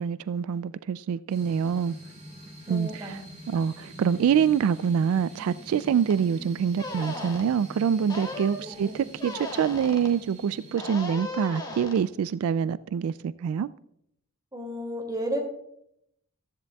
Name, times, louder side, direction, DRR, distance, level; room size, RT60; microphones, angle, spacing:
voice 1, 0.0-1.9 2.7-3.2 3.5-13.7, right 7 dB, 85° right, 0.3 m, -25 dB
sound 1, 1.3-10.8, equal, 35° right, 3.0 m, -45 dB
voice 2, 2.7-3.1 3.5-3.6 8.6-9.0 14.5-15.4, equal, 20° right, 2.2 m, -33 dB
sound 2, 6.1-6.2 6.8-7.4 8.1-8.6 9.2-10.1 10.8-12.0, left 2 dB, 20° left, 1.6 m, -36 dB
14.5 x 13.0 x 2.3 m
head